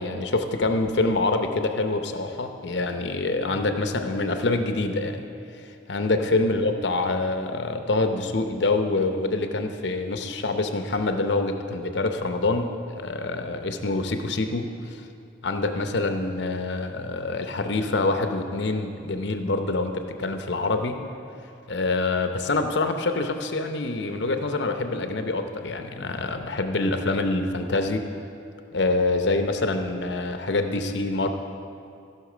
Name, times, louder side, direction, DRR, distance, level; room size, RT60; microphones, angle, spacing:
voice 1, 0.0-5.2 5.9-14.7 15.4-21.0 21.7-28.1 28.7-31.3, left 2 dB, 80° left, 6 dB, 0.7 m, -26 dB
15.5 x 5.9 x 4.9 m, 2.5 s
head